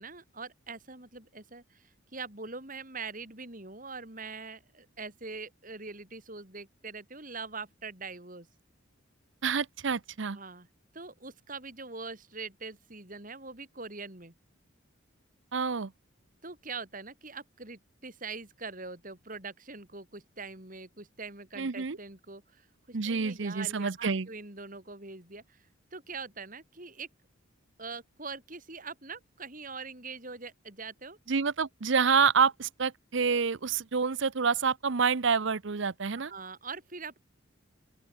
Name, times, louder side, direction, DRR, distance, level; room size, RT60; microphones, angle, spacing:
voice 1, 0.0-8.5 10.3-10.7 10.9-14.3 16.4-25.7 25.9-27.1 27.8-31.2 36.3-37.2, right 4 dB, 40° right, 3.7 m, -43 dB
voice 2, 9.4-10.4 15.5-15.9 21.6-22.0 22.9-24.3 31.3-36.3, right 5 dB, 65° right, 0.7 m, -28 dB
open air
head